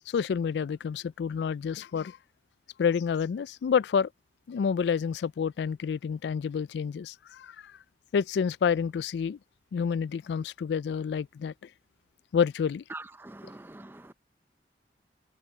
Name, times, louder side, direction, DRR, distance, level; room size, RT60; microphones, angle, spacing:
voice 1, 0.1-2.2 2.8-4.1 4.5-7.8 8.1-9.4 9.7-11.5 12.3-12.8, left 6 dB, 75° left, 0.3 m, -28 dB
voice 2, 12.9-14.1, right 2 dB, 10° right, 0.5 m, -44 dB
head